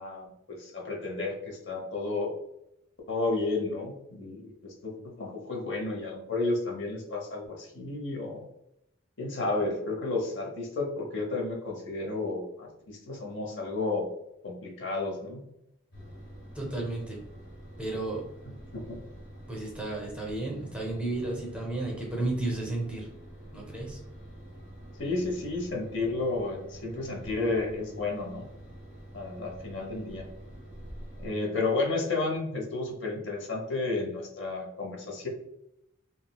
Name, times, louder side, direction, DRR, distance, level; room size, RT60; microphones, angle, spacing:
voice 1, 0.0-2.3 3.1-8.5 9.2-14.1 14.4-15.5 18.4-19.0 25.0-28.5 29.1-30.3 31.2-35.3, left 3 dB, 60° left, 0 dB, 0.7 m, -32 dB
sound 1, 15.9-31.3, equal, 80° left, 1.3 m, -47 dB
voice 2, 16.5-17.2 17.8-18.2 19.5-23.1 23.5-24.0, right 2 dB, 5° right, -3 dB, 0.6 m, -33 dB
3.7 x 2.0 x 2.2 m, 0.80 s
head